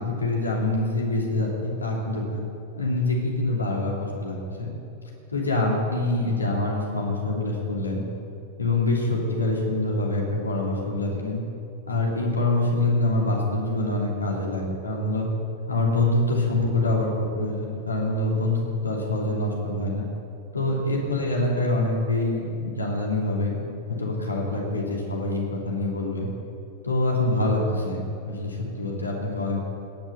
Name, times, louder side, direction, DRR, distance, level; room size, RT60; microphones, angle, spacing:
voice 1, 0.0-2.4 2.8-4.7 5.3-8.0 8.6-11.4 11.9-15.3 15.7-17.1 17.4-20.1 20.5-23.6 23.9-26.3 26.8-29.6, left 2 dB, 80° left, -1 dB, 2.9 m, -25 dB
17.5 x 10.5 x 6.9 m, 2.7 s
figure-of-eight pair, 90°, 0 cm